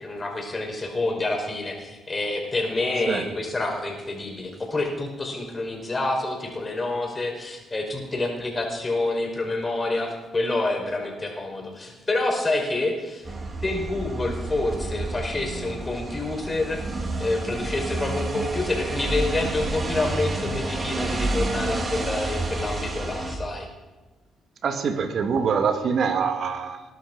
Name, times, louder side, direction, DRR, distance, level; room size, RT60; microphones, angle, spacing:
voice 1, 0.0-13.2 13.6-23.7, left 2 dB, 25° left, 2 dB, 4.9 m, -28 dB
sound 1, 13.2-23.4, right 2 dB, 35° right, 3.0 m, -30 dB
voice 2, 24.6-26.8, right 6 dB, 60° right, 7 dB, 2.2 m, -24 dB
20.0 x 12.0 x 5.4 m, 1.2 s
cardioid pair, 85°, 0 cm